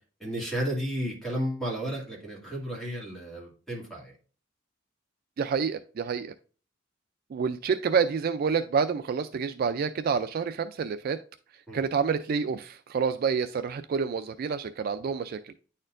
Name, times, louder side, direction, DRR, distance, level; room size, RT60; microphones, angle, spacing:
voice 1, 0.2-4.1 11.7-11.8, equal, ahead, -4 dB, 2.3 m, -33 dB
voice 2, 5.4-6.3 7.3-11.2 11.7-15.5, right 6 dB, 50° right, 10 dB, 0.3 m, -28 dB
9.7 x 4.3 x 2.5 m, 0.39 s
head